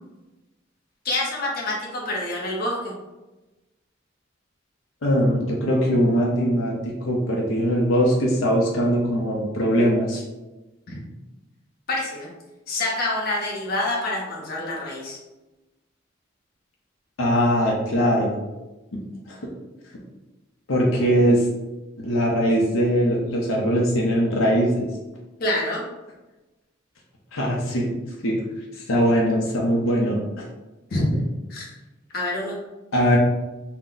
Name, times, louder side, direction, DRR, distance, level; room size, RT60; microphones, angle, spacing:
voice 1, 1.0-2.9 10.9-11.0 11.9-12.3 12.7-15.2 25.4-25.8 30.9-31.2 31.5-31.7 32.1-32.6, left 1 dB, 50° left, -3 dB, 0.7 m, -26 dB
voice 2, 5.0-10.2 17.2-18.4 18.9-19.0 19.3-19.4 20.7-21.4 22.0-24.9 27.3-27.9 28.2-28.4 28.7-30.4 32.9-33.2, equal, 85° left, -2 dB, 0.6 m, -21 dB
2.5 x 2.0 x 3.8 m, 1.1 s
head